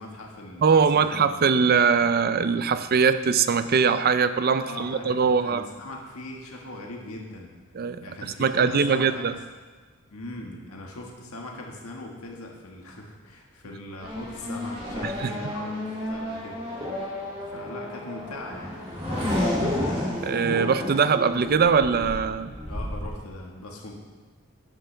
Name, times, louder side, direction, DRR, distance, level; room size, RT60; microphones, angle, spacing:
voice 1, 0.0-1.4 4.6-7.5 8.0-9.3 10.1-17.1 17.5-18.8 22.7-23.9, left 2 dB, 90° left, 0 dB, 1.7 m, -40 dB
voice 2, 0.6-5.6 7.7-9.4 15.0-15.5 20.2-22.5, right 5 dB, 45° right, 12 dB, 0.5 m, -22 dB
Race car auto racing / Accelerating revving vroom, 14.0-23.1, left 1 dB, 30° right, 2.6 m, -31 dB
12.5 x 9.1 x 3.4 m, 1.4 s
head